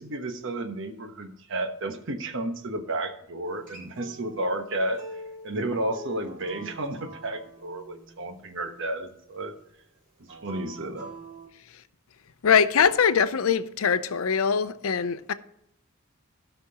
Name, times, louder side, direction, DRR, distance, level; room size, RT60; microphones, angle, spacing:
voice 1, 0.0-5.0 5.4-9.5 10.3-11.1, right 1 dB, 65° right, 1.1 m, -32 dB
Acoustic guitar, 3.5-8.7 10.2-11.5, right 1 dB, 40° right, 3.5 m, -45 dB
voice 2, 12.4-15.3, left 6 dB, 75° left, 0.6 m, -22 dB
16.0 x 5.9 x 2.9 m
head